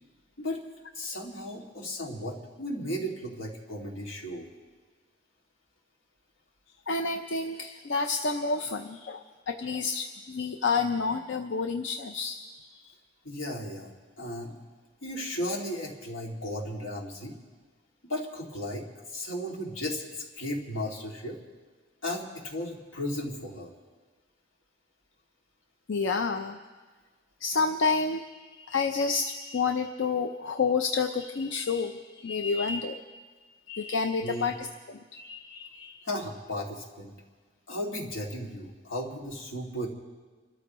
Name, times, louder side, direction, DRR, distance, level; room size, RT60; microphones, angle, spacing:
voice 1, 0.9-4.5 13.2-14.5 15.0-17.4 18.0-21.4 22.0-23.7 34.2-34.5 36.0-37.1 37.7-39.9, left 1 dB, 90° left, -1 dB, 2.4 m, -35 dB
voice 2, 6.9-12.4 25.9-26.6 27.4-33.0 33.7-36.1, left 4 dB, 70° left, 6 dB, 0.6 m, -29 dB
29.5 x 13.5 x 3.1 m, 1.4 s
head